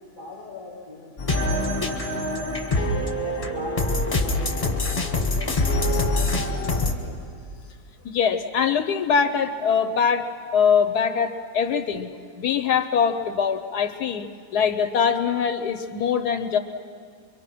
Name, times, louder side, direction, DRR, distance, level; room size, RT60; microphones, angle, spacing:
voice 1, 0.0-2.1 3.0-7.2, left 2 dB, 25° right, -2 dB, 4.8 m, -39 dB
sound 1, 1.2-6.9, left 2 dB, 20° left, 1.4 m, -24 dB
voice 2, 8.0-10.3 10.5-16.6, left 6 dB, 75° left, 10 dB, 1.3 m, -23 dB
24.5 x 24.0 x 6.1 m, 2.1 s
omnidirectional pair, 1.8 m